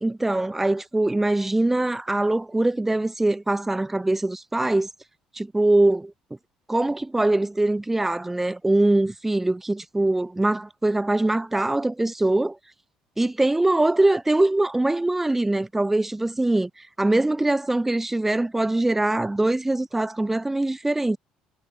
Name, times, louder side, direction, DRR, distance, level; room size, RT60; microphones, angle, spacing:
voice 1, 0.0-4.9 5.3-6.1 6.7-12.6 13.2-21.2, right 2 dB, 10° right, 1.1 m, -22 dB
supercardioid pair, 80°, 2 cm